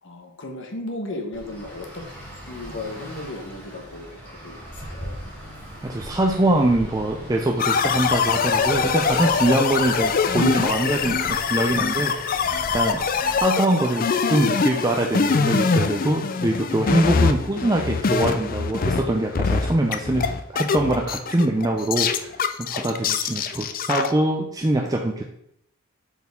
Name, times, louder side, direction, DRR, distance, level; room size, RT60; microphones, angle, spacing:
voice 1, 0.0-2.0 2.5-5.2, left 2 dB, 60° left, 3 dB, 1.2 m, -35 dB
Traffic noise roadway noise, 1.3-13.4, equal, 5° left, 2.9 m, -39 dB
voice 2, 5.8-12.4 12.7-13.0 13.4-22.3 22.6-25.2, right 1 dB, 15° right, 1 dB, 0.5 m, -23 dB
sound 1, 7.6-19.0 19.3-24.1, left 5 dB, 45° left, 0.4 m, -23 dB
8.0 x 4.5 x 3.6 m, 0.75 s
head